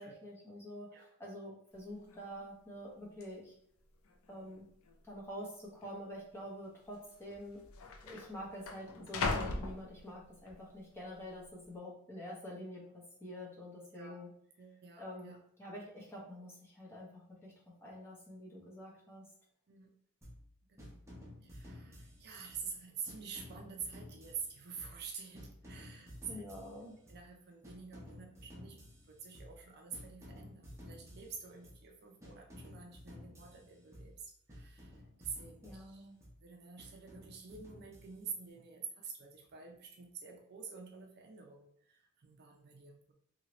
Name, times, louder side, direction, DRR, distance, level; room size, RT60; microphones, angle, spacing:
voice 1, 0.0-3.5 4.3-4.6 5.0-7.6 8.0-14.3 15.0-15.3 15.6-17.5 17.8-19.3 26.2-26.9 35.6-36.2, equal, 10° left, -4 dB, 0.9 m, -47 dB
sound 1, 1.7-1.8 2.1-2.5 3.2-3.3 4.1-4.6 4.8-5.0 5.8-6.0 7.0-7.1 7.3-10.5 11.0-11.4, left 3 dB, 65° left, 0.4 m, -40 dB
voice 2, 14.6-15.4 19.7-19.9 20.7-21.0 21.4-26.4 27.1-28.8 29.1-36.1 36.4-43.1, right 6 dB, 50° right, 2 dB, 0.4 m, -48 dB
sound 2, 20.2-20.5 20.8-22.7 23.1-25.1 25.3-27.3 27.6-29.6 29.9-31.9 32.2-34.2 34.5-36.4 36.8-38.4, left 1 dB, 15° right, 0.8 m, -53 dB
2.8 x 2.8 x 3.0 m, 0.67 s
head